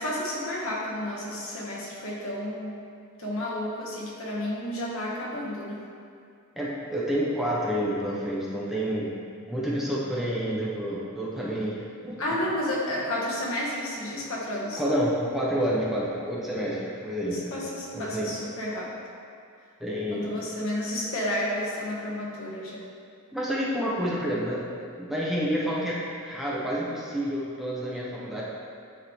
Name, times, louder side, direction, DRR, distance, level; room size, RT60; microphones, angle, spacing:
voice 1, 0.0-2.8 3.2-5.9 12.2-14.8 17.2-18.9 20.1-22.9, left 1 dB, 65° left, -4 dB, 1.2 m, -31 dB
voice 2, 6.6-9.1 9.5-12.2 14.8-17.5 17.9-18.3 19.8-20.4 23.3-24.6 25.0-28.4, equal, ahead, -7 dB, 0.8 m, -29 dB
9.6 x 3.8 x 3.1 m, 2.3 s
head